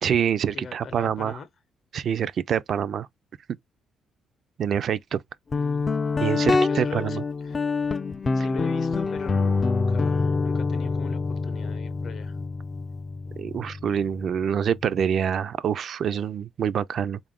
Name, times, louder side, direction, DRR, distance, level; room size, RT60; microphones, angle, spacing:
voice 1, 0.0-1.4 1.9-3.1 4.6-5.2 6.2-7.2 13.4-17.2, right 8 dB, 60° right, 0.3 m, -26 dB
voice 2, 0.5-1.5 5.5-5.9 6.7-7.6 8.3-12.3, left 6 dB, 60° left, 0.7 m, -41 dB
Guitar, 5.5-15.0, left 4 dB, 30° left, 0.3 m, -26 dB
3.8 x 2.4 x 3.5 m
cardioid pair, 90°, 0 cm